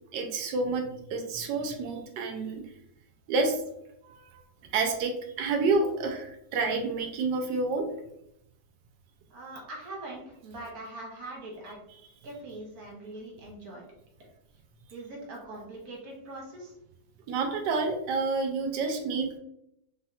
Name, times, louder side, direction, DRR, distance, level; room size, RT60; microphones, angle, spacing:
voice 1, 0.1-2.6 3.3-3.6 4.0-4.4 4.7-7.9 17.3-19.3, right 3 dB, 75° right, 4 dB, 1.2 m, -29 dB
voice 2, 9.3-11.8 12.2-13.8 14.9-16.7, right 2 dB, 60° right, -2 dB, 1.4 m, -42 dB
3.5 x 2.8 x 2.3 m, 0.78 s
omnidirectional pair, 2.0 m